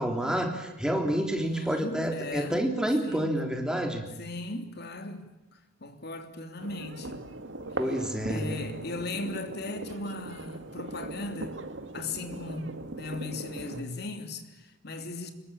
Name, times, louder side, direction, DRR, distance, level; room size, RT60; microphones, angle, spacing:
voice 1, 0.0-4.1 7.8-8.5, equal, 5° right, 3.7 m, -28 dB
voice 2, 1.3-2.7 3.0-3.4 4.2-5.3 5.8-7.3 8.3-11.6 11.9-15.3, left 2 dB, 60° left, 3.2 m, -37 dB
sound 1, 6.6-13.8, right 2 dB, 75° right, 2.1 m, -39 dB
26.0 x 22.5 x 8.9 m
head